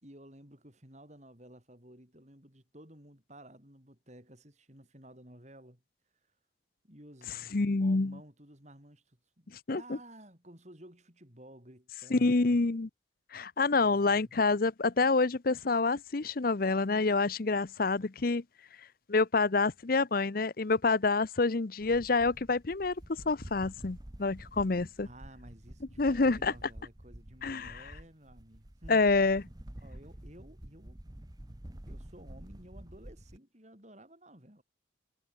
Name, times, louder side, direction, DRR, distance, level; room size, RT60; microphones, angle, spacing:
voice 1, 0.0-5.8 6.8-12.7 13.8-14.4 25.0-29.0 29.8-31.0 31.9-34.6, right 1 dB, 35° right, 5.7 m, -54 dB
voice 2, 7.3-8.2 9.5-10.0 12.1-12.9 13.3-18.4 19.1-25.1 26.0-26.5 27.4-27.8 28.9-29.4, left 3 dB, 50° left, 0.7 m, -27 dB
sound 1, 21.8-33.4, right 1 dB, 20° right, 1.1 m, -49 dB
head